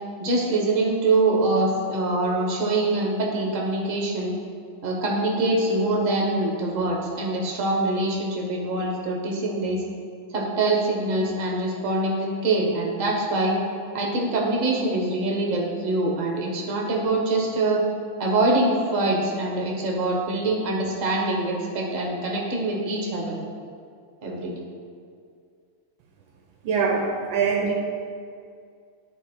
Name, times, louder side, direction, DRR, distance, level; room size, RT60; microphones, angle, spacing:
voice 1, 0.2-4.3 4.8-9.8 10.3-13.6 13.9-17.8 18.2-23.4 24.2-24.6, right 2 dB, 45° right, -2 dB, 1.3 m, -24 dB
voice 2, 26.6-27.0 27.3-27.7, right 5 dB, 80° right, 1 dB, 1.4 m, -22 dB
10.0 x 3.5 x 4.4 m, 2.2 s
omnidirectional pair, 2.2 m